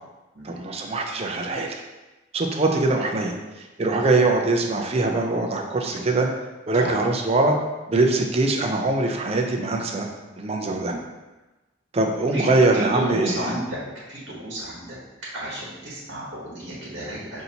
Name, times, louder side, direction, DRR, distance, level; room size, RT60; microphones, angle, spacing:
voice 1, 0.4-1.8 2.3-6.3 6.7-7.6 7.9-10.1 10.4-10.9 11.9-13.5, right 2 dB, 35° right, 2 dB, 0.4 m, -22 dB
voice 2, 12.7-13.8 14.1-15.0 15.3-17.4, right 1 dB, 75° right, -6 dB, 1.1 m, -31 dB
5.5 x 2.7 x 2.8 m, 1.1 s
head